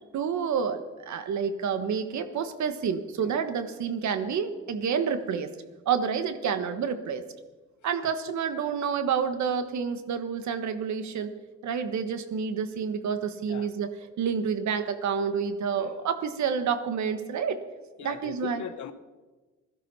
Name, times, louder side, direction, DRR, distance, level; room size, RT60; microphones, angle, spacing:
voice 1, 0.1-5.5 5.8-7.2 7.8-11.3 11.6-13.9 14.2-17.6 18.0-18.6, right 6 dB, 70° right, 10 dB, 1.5 m, -29 dB
voice 2, 15.8-16.1 18.0-18.9, left 9 dB, 70° left, 10 dB, 1.2 m, -40 dB
16.5 x 13.0 x 5.7 m, 1.3 s
cardioid pair, 90°, 30 cm